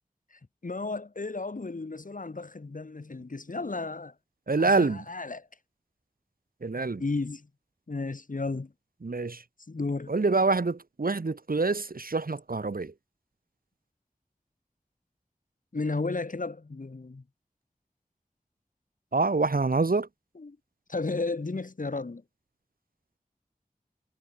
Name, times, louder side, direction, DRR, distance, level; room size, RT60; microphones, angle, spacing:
voice 1, 0.3-4.1 4.6-5.5 7.0-7.5 7.9-8.7 9.7-10.1 15.7-17.2 20.4-20.6 20.9-22.2, left 3 dB, 65° left, 2.0 m, -33 dB
voice 2, 4.5-5.0 6.6-7.0 9.0-9.4 10.1-12.9 19.1-20.1, right 3 dB, 80° right, 2.7 m, -26 dB
wide cardioid pair, 60°, 15 cm